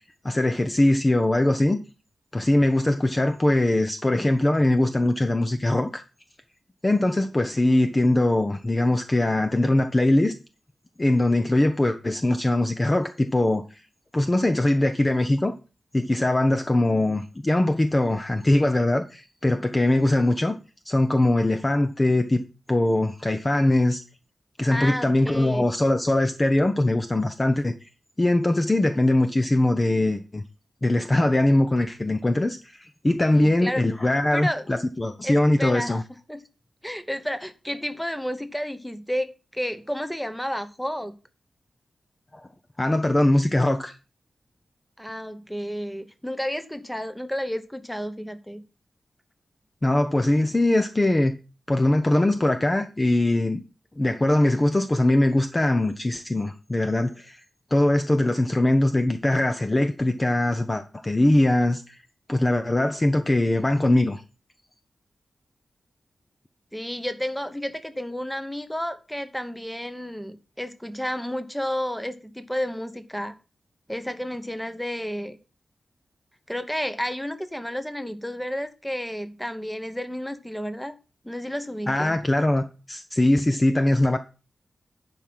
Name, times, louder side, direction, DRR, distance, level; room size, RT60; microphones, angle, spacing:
voice 1, 0.2-1.8 2.3-6.0 6.8-10.3 11.0-13.6 14.1-15.5 15.9-20.6 20.9-22.4 22.7-24.0 24.6-27.7 28.2-30.4 30.8-36.0 42.8-44.0 49.8-51.4 51.7-53.6 54.0-57.4 57.7-62.0 62.3-64.2 81.9-84.2, left 1 dB, 20° left, 0.7 m, -21 dB
voice 2, 24.7-25.6 33.3-33.8 34.3-34.7 35.2-36.0 36.3-36.4 36.8-41.1 45.0-48.6 66.7-73.4 73.9-75.4 76.5-81.0 81.2-82.2, equal, 5° left, 1.1 m, -31 dB
10.5 x 5.0 x 6.0 m
wide cardioid pair, 115°, 0 cm